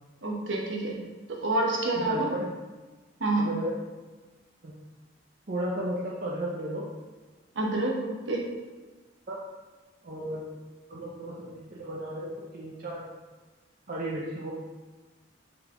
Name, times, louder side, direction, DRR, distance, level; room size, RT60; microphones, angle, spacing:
voice 1, 0.2-0.9 1.4-2.3 3.2-3.5 7.6-8.0 8.3-8.4, right 2 dB, 85° right, -1 dB, 0.8 m, -27 dB
voice 2, 1.9-2.5 3.4-3.7 4.6-4.7 5.5-6.9 9.3-9.4 10.0-10.4 10.9-13.0 13.9-14.5, right 1 dB, 50° right, -5 dB, 0.5 m, -34 dB
3.8 x 3.6 x 2.9 m, 1.2 s
head